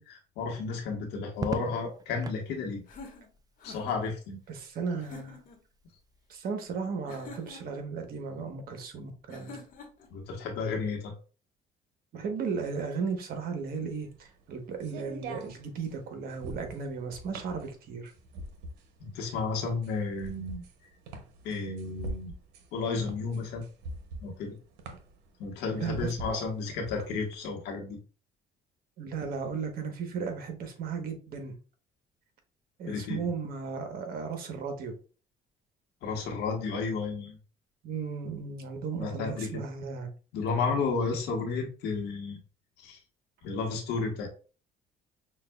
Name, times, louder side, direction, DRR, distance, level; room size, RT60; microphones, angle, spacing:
voice 1, 0.0-2.8 3.6-4.4 10.1-11.1 19.0-20.6 21.4-22.3 22.7-23.6 24.2-24.5 25.4-28.0 32.9-33.3 36.0-37.4 39.0-39.5 40.3-42.4 42.8-43.0 43.4-44.3, left 4 dB, 85° left, 2 dB, 1.3 m, -32 dB
Crackle, 1.3-2.5 4.1-4.6, right 4 dB, 20° right, 0.4 m, -38 dB
sound 1, 2.9-4.1 5.0-5.6 7.1-7.8 9.3-10.1, left 3 dB, 55° left, 1.2 m, -47 dB
voice 2, 4.5-5.4 6.3-9.6 12.1-18.1 25.7-26.4 29.0-31.5 32.8-34.9 37.8-40.1, right 5 dB, 60° right, 5 dB, 1.1 m, -35 dB
sound 2, 13.5-27.3, right 1 dB, 90° right, 0.8 m, -44 dB
5.8 x 2.4 x 2.3 m, 0.36 s
cardioid pair, 110°, 17 cm